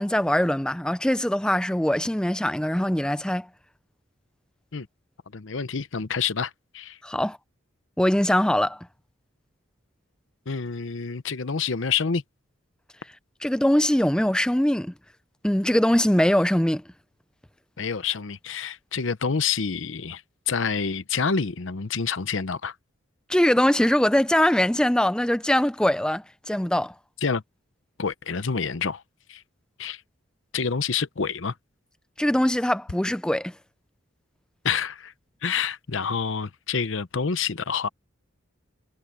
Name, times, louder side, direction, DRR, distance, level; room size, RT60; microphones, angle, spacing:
voice 1, 0.0-3.5 7.0-7.4 8.0-8.8 13.4-14.9 15.4-16.8 23.3-26.9 32.2-33.5, left 1 dB, 5° left, 0.4 m, -22 dB
voice 2, 5.3-7.0 10.5-12.2 17.8-20.2 20.5-22.7 27.2-27.4 28.0-29.0 29.3-29.4 29.8-30.0 30.5-31.5 34.6-35.1 35.4-37.9, left 6 dB, 70° left, 0.8 m, -27 dB
head